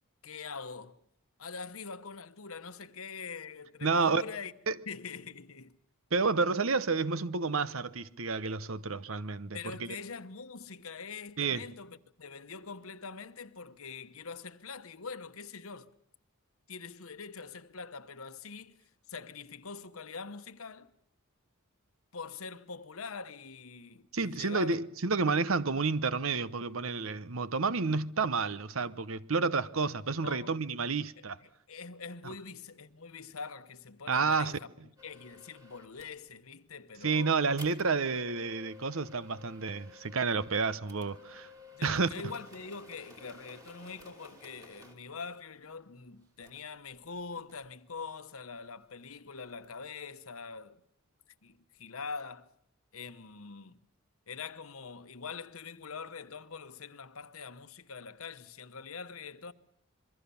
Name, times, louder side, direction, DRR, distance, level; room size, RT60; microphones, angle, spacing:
voice 1, 0.2-0.9 1.4-4.5 4.9-5.8 9.5-15.9 16.7-18.8 19.1-20.9 22.1-24.8 30.2-30.6 31.2-34.7 35.0-37.3 41.7-50.8 51.4-52.5 52.9-53.8 54.3-59.5, left 5 dB, 80° left, 1.2 m, -44 dB
voice 2, 3.8-4.2 4.7-4.8 6.1-9.9 11.4-11.6 24.1-31.4 34.1-34.5 37.0-41.5 41.8-42.1, right 4 dB, 70° right, 0.9 m, -30 dB
sound 1, 35.0-36.2 37.6-45.0 46.4-46.6 46.9-48.1 49.4-49.7, left 2 dB, 15° right, 2.7 m, -54 dB
26.5 x 23.0 x 7.0 m
head